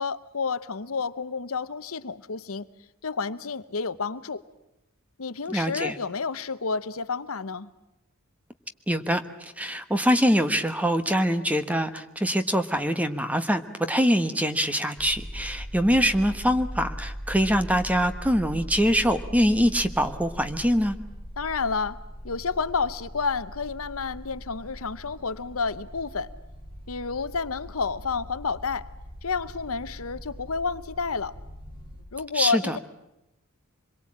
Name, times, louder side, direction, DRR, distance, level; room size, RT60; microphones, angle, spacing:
voice 1, 0.0-2.7 3.0-4.4 5.2-7.7 21.4-22.0 22.2-26.3 26.9-28.9 29.2-31.3 32.1-32.8, left 4 dB, 70° left, 14 dB, 0.9 m, -30 dB
voice 2, 5.5-6.0 8.9-13.6 13.9-21.0 32.3-32.8, equal, 5° right, 9 dB, 1.3 m, -24 dB
sound 1, 15.0-32.0, equal, 25° right, 5.9 m, -40 dB
26.0 x 22.5 x 8.7 m, 0.91 s
head